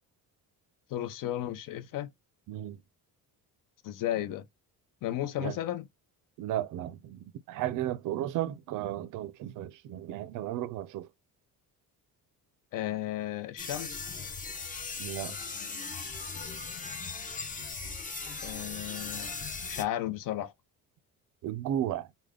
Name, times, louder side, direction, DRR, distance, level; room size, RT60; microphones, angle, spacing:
voice 1, 0.9-2.1 3.8-4.4 5.0-5.9 12.7-14.1 18.4-19.3 19.6-20.5, left 13 dB, 60° left, 0.7 m, -34 dB
voice 2, 2.5-2.8 5.4-5.5 6.4-11.1 15.0-15.3 21.4-22.1, right 12 dB, 55° right, 0.4 m, -34 dB
sound 1, 13.6-19.8, left 4 dB, 20° left, 0.6 m, -38 dB
3.4 x 2.2 x 3.6 m
cardioid pair, 160°, 37 cm